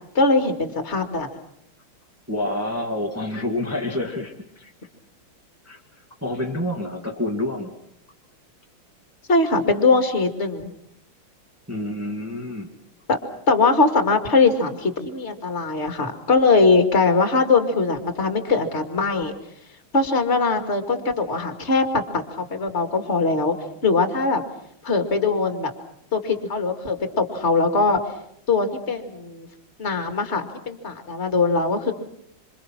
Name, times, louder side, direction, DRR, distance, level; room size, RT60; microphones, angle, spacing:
voice 1, 0.1-1.3 9.3-10.7 13.1-13.2 13.5-19.3 19.9-23.6 23.8-24.4 24.8-25.7 26.1-28.0 28.5-29.5 29.8-31.9, left 3 dB, 30° left, 6 dB, 2.4 m, -21 dB
voice 2, 2.3-4.7 5.7-5.8 6.2-7.7 11.7-12.7, left 1 dB, 5° right, 1 dB, 2.1 m, -28 dB
26.5 x 26.0 x 6.0 m, 0.72 s
omnidirectional pair, 2.3 m